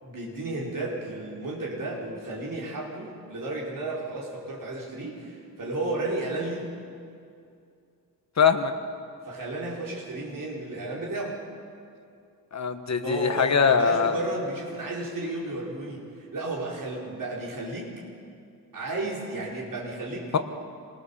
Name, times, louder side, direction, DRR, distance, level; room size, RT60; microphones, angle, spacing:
voice 1, 0.0-6.7 9.2-11.4 13.0-17.9 18.7-20.3, right 2 dB, 60° right, -3 dB, 4.5 m, -33 dB
voice 2, 8.4-8.7 12.5-14.2, left 6 dB, 45° left, 8 dB, 1.4 m, -22 dB
27.0 x 20.5 x 7.1 m, 2.5 s
wide cardioid pair, 145°, 37 cm